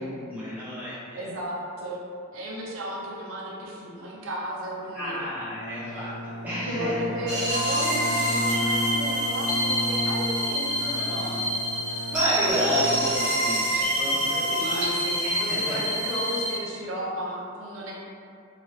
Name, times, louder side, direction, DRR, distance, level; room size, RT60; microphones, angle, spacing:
voice 1, 0.0-1.3 4.9-7.0 11.9-14.9 15.2-15.8, equal, 10° right, -11 dB, 0.6 m, -31 dB
voice 2, 1.1-2.0 2.3-5.2 5.9-6.1 6.7-11.6 14.5-17.9, equal, 80° right, -4 dB, 0.5 m, -34 dB
Bowed string instrument, 5.3-13.8, equal, 50° left, 0.7 m, -34 dB
sound 1, 7.3-16.6, equal, 55° right, 0.8 m, -26 dB
2.8 x 2.3 x 3.1 m, 2.5 s
head